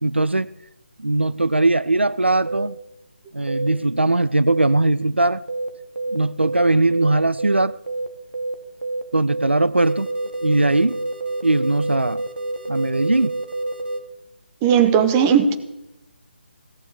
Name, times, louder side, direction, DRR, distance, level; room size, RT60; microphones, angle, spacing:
voice 1, 0.0-0.5 1.0-2.8 3.3-5.5 6.1-7.8 9.1-10.1 10.4-11.0 11.4-12.2 12.7-13.4, right 2 dB, 80° right, 0.5 m, -19 dB
sound 1, 2.5-2.7 3.5-3.7 4.5-4.7 5.5-5.7 5.9-6.2 6.4-6.6 6.9-7.1 7.4-7.6 7.9-8.1 8.3-8.5 8.8-9.0 9.3-9.5 9.8-14.0, right 2 dB, 65° right, 1.9 m, -28 dB
voice 2, 14.6-15.5, right 7 dB, 15° right, 1.1 m, -16 dB
17.0 x 7.1 x 9.8 m
figure-of-eight pair, 150°, 6 cm